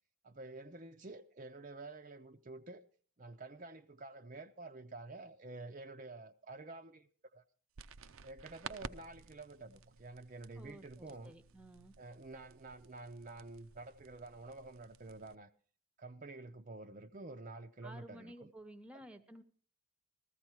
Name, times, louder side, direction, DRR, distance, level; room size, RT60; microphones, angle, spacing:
voice 1, 0.2-2.8 3.2-7.4 8.2-11.3 12.0-15.5 16.0-18.5 18.9-19.0, right 2 dB, 40° right, 0.6 m, -49 dB
sound 1, 7.7-15.3, right 5 dB, 80° right, 0.6 m, -53 dB
voice 2, 10.6-11.9 17.8-19.4, right 1 dB, 5° right, 0.9 m, -53 dB
14.5 x 14.5 x 4.6 m
head